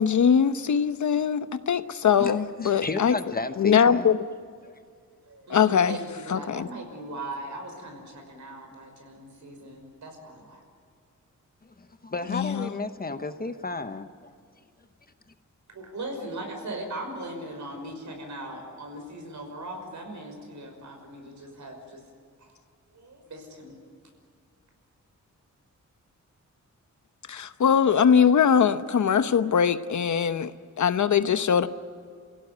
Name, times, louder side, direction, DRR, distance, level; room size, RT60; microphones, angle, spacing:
voice 1, 0.0-3.1 3.6-4.2 5.5-6.0 6.3-6.7 12.3-12.7 27.3-30.5 30.8-31.7, left 7 dB, 65° left, 1.0 m, -22 dB
voice 2, 2.6-4.1 4.6-4.7 11.6-14.1, left 3 dB, 30° left, 1.0 m, -32 dB
voice 3, 5.3-10.6 15.7-22.0 22.4-22.6 22.9-23.8, right 1 dB, 70° right, 5.8 m, -39 dB
29.0 x 16.5 x 9.5 m
wide cardioid pair, 145°, 31 cm